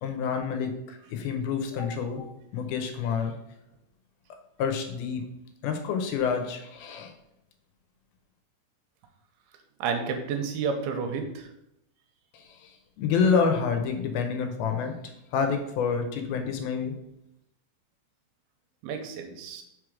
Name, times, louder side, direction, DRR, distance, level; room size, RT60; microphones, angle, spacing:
voice 1, 0.0-2.3 2.5-3.3 4.6-5.2 5.6-7.1 12.3-12.4 13.0-17.0, left 6 dB, 80° left, 6 dB, 2.7 m, -28 dB
voice 2, 9.8-11.3 18.8-19.6, right 5 dB, 85° right, 5 dB, 2.8 m, -30 dB
5.5 x 4.8 x 6.2 m, 0.83 s
omnidirectional pair, 4.4 m